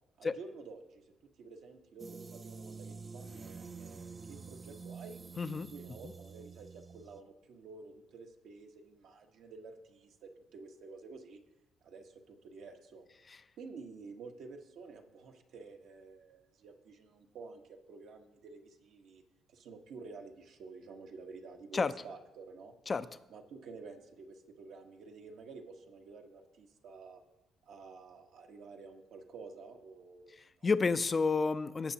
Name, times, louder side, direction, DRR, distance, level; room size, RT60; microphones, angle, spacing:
voice 1, 0.2-1.0 1.4-5.2 5.7-11.4 11.8-13.0 13.6-19.2 19.5-22.7 23.3-27.2 27.6-30.7, right 4 dB, 70° right, 2 dB, 1.2 m, -51 dB
sound 1, 2.0-7.2, right 5 dB, 30° right, 0.5 m, -48 dB
voice 2, 5.4-5.7 21.7-21.9 22.9-23.1 30.6-31.9, left 4 dB, 35° left, 13 dB, 0.5 m, -30 dB
16.0 x 6.8 x 2.8 m, 0.96 s
supercardioid pair, 70°, 0 cm